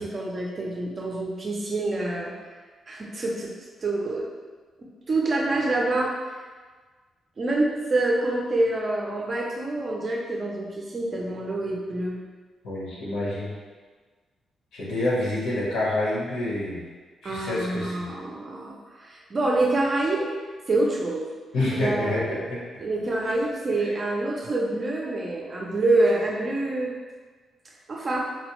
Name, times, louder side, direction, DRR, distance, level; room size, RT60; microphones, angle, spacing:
voice 1, 0.0-2.3 2.9-3.5 3.8-4.3 5.1-6.4 7.4-12.2 17.2-20.3 20.7-21.2 21.7-22.4 22.8-26.9 27.6-28.2, right 2 dB, 30° right, -2 dB, 0.4 m, -26 dB
voice 2, 12.6-13.5 14.7-16.8 17.2-17.9 21.5-22.6, left 1 dB, 70° left, -5 dB, 1.0 m, -27 dB
4.1 x 2.0 x 2.9 m, 1.4 s
wide cardioid pair, 175°, 0 cm